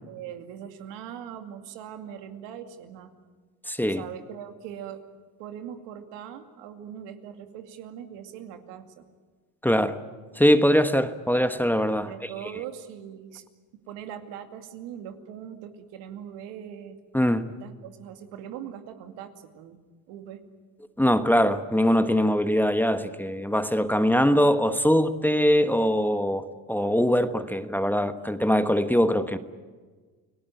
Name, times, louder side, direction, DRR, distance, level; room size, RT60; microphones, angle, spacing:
voice 1, 0.0-3.1 3.9-5.0 5.4-9.0 11.9-13.4 13.9-17.0 17.6-19.8 20.1-20.5 28.2-28.3, right 9 dB, 80° right, 2.5 m, -41 dB
voice 2, 3.7-4.0 9.6-10.0 10.3-12.3 17.1-17.5 21.0-29.4, equal, 5° left, 1.2 m, -22 dB
30.0 x 18.0 x 9.2 m
supercardioid pair, 90°, 43 cm